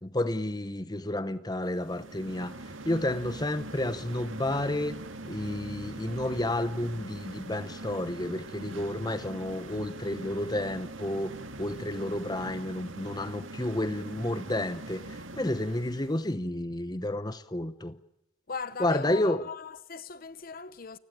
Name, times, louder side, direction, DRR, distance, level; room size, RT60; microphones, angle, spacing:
voice 1, 0.0-2.5 2.9-5.0 5.3-11.3 11.6-15.0 15.3-17.9 18.8-19.4, left 1 dB, 20° left, 0.9 m, -31 dB
sound 1, 1.7-16.2, right 2 dB, 80° right, 2.1 m, -42 dB
voice 2, 18.5-21.0, left 5 dB, 45° left, 0.9 m, -38 dB
29.5 x 17.0 x 8.8 m
head